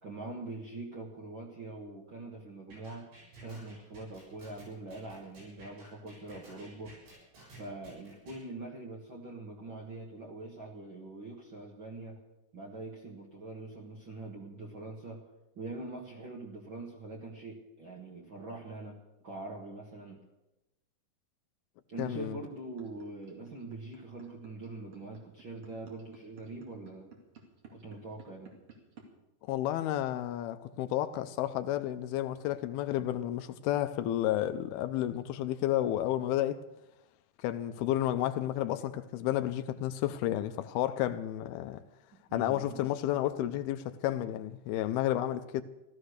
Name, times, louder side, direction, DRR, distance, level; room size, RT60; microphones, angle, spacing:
voice 1, 0.0-3.1 3.4-7.0 7.5-12.2 12.5-15.2 15.5-19.0 19.2-20.2 21.9-27.1 27.7-28.5 42.3-42.8, right 2 dB, 70° right, 1.1 m, -43 dB
sound 1, 2.7-8.4, right 2 dB, 90° right, 9.5 m, -53 dB
voice 2, 22.0-22.4 29.5-36.7 37.4-41.8 42.3-45.6, left 13 dB, 80° left, 2.3 m, -31 dB
sound 2, 22.8-29.0, right 7 dB, 40° right, 2.6 m, -53 dB
15.5 x 13.0 x 6.5 m
omnidirectional pair, 5.0 m